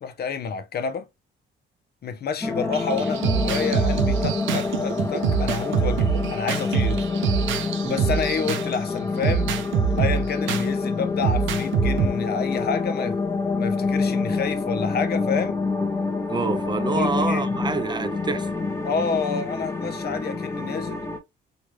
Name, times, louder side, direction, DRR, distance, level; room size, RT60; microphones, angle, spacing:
voice 1, 0.0-1.1 2.0-7.1 7.9-9.5 10.0-13.2 13.6-15.6 16.8-17.4 18.8-21.1, left 6 dB, 55° left, 0.7 m, -29 dB
sound 1, 2.4-21.2, left 4 dB, 15° left, 0.8 m, -27 dB
sound 2, 2.7-8.7 9.2-10.7 11.2-12.1, right 7 dB, 75° right, 0.5 m, -24 dB
voice 2, 16.3-18.6, right 4 dB, 20° right, 0.4 m, -27 dB
3.1 x 2.4 x 3.1 m
cardioid pair, 90°, 20 cm